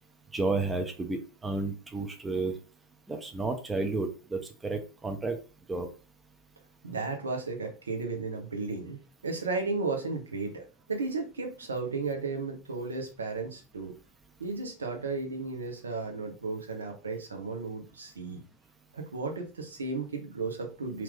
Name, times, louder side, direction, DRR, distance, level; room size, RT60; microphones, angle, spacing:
voice 1, 0.3-2.5 3.1-5.4 5.7-5.9, right 3 dB, 10° right, 5 dB, 0.5 m, -31 dB
voice 2, 6.8-9.0 9.2-13.9 14.4-18.4 18.9-21.0, right 3 dB, 70° right, 3 dB, 0.9 m, -34 dB
2.9 x 2.5 x 3.5 m, 0.33 s
figure-of-eight pair, 90°, 0 cm